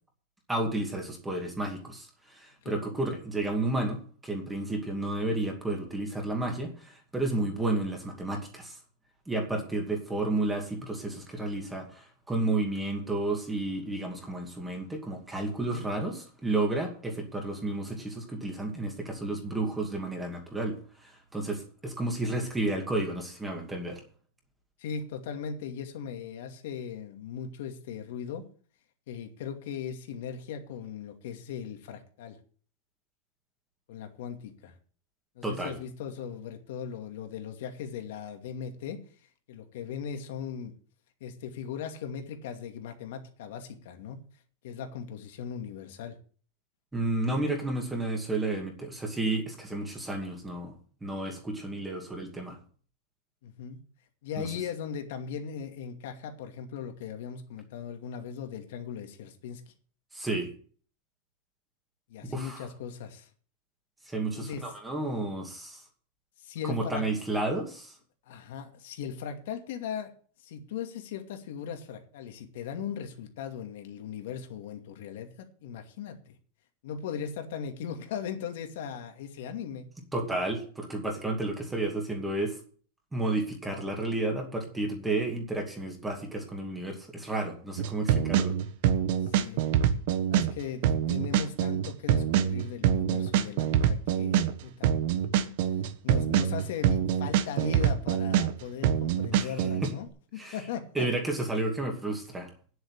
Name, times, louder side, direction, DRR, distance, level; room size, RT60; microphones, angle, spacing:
voice 1, 0.5-8.8 9.3-24.0 35.4-35.8 46.9-50.7 51.0-52.6 54.4-54.5 60.1-60.5 62.3-62.7 64.1-65.8 66.6-67.9 80.1-82.6 83.1-88.5 99.3-99.9 100.4-100.6 100.9-102.5, right 2 dB, 5° right, 1 dB, 2.4 m, -31 dB
voice 2, 24.8-28.5 29.1-32.4 33.9-34.7 35.4-39.0 39.5-40.7 41.2-44.2 44.6-46.1 53.4-53.8 54.2-59.6 62.1-63.3 64.3-64.7 66.4-67.0 68.3-70.1 70.4-76.3 76.8-79.9 89.2-89.6 90.3-94.9 96.0-101.1, left 7 dB, 55° left, 5 dB, 2.4 m, -38 dB
sound 1, 87.8-99.9, right 9 dB, 45° right, 1.2 m, -25 dB
9.9 x 8.0 x 8.2 m, 0.43 s
supercardioid pair, 175°, 0 cm